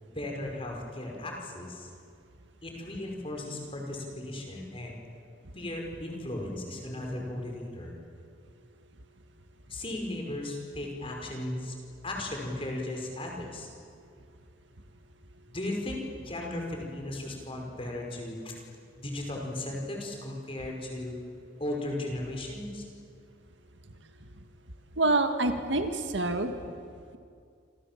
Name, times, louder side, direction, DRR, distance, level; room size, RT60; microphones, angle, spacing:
voice 1, 0.0-1.9 2.6-5.0 5.5-8.0 9.7-11.7 12.0-13.7 15.5-18.6 19.0-21.1 21.6-22.8, left 1 dB, 30° left, 0 dB, 5.3 m, -36 dB
voice 2, 25.0-26.5, right 2 dB, 70° right, 7 dB, 2.0 m, -26 dB
28.0 x 26.5 x 7.6 m, 2.3 s
head